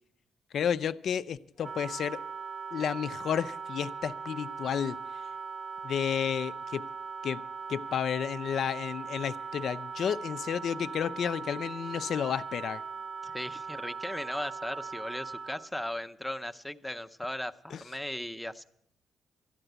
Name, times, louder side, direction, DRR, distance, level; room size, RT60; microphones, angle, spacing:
voice 1, 0.5-2.2 2.7-5.0 5.8-6.9 7.2-7.4 7.7-12.8 17.7-17.8, left 8 dB, 60° left, 14 dB, 0.5 m, -31 dB
Wind instrument woodwind instrument, 1.6-15.7, right 5 dB, 50° right, 0.6 m, -40 dB
voice 2, 13.2-18.6, left 1 dB, 5° left, 9 dB, 0.7 m, -37 dB
13.5 x 10.0 x 8.0 m, 0.71 s
cardioid pair, 90°, 0 cm